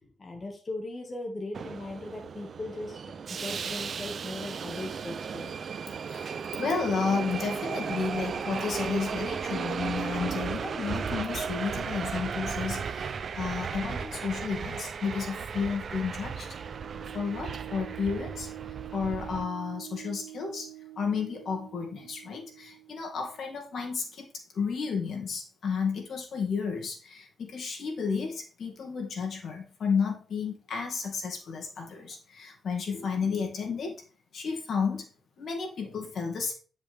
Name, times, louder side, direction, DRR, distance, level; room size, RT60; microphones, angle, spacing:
voice 1, 0.0-5.5, left 2 dB, 30° left, 2 dB, 1.8 m, -39 dB
Subway metro underground, 1.5-19.4, right 6 dB, 55° right, 0.5 m, -35 dB
voice 2, 6.0-16.6 17.1-18.5 18.9-24.3 24.5-34.0 34.3-35.1 35.4-36.5, left 5 dB, 65° left, 2 dB, 2.4 m, -32 dB
sound 1, 16.3-23.8, right 15 dB, 80° right, 0.9 m, -46 dB
10.0 x 5.5 x 3.5 m, 0.39 s
cardioid pair, 95°, 0 cm